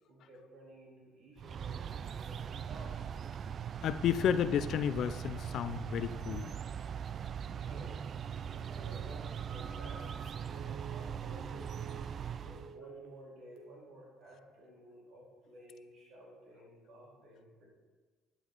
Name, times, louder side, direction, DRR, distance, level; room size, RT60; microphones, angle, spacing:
voice 1, 0.1-3.0 7.5-8.1 8.4-10.2 10.5-12.0 12.4-17.7, equal, 65° right, -3 dB, 3.6 m, -54 dB
sound 1, 1.4-12.8, right 8 dB, 45° right, 0.3 m, -41 dB
voice 2, 3.8-6.5, left 9 dB, 60° left, 13 dB, 0.4 m, -31 dB
Telephone, 9.2-12.3 12.5-13.2 13.6-13.9, right 5 dB, 85° right, 1.2 m, -52 dB
11.5 x 7.9 x 4.0 m, 1.4 s
supercardioid pair, 90°, 0 cm